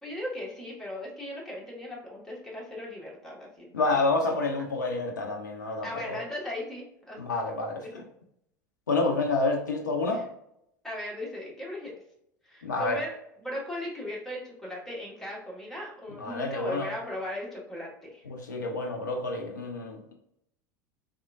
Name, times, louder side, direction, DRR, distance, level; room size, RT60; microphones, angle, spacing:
voice 1, 0.0-3.7 5.8-7.2 7.8-8.0 10.1-10.2 10.8-12.0 12.4-18.2, left 1 dB, 5° left, -5 dB, 1.4 m, -37 dB
voice 2, 3.7-6.2 7.2-8.0 8.9-10.2 12.6-13.0 16.2-16.9 18.3-20.1, left 3 dB, 70° left, 2 dB, 0.6 m, -29 dB
3.6 x 3.5 x 2.3 m, 0.76 s
figure-of-eight pair, 75°, 10 cm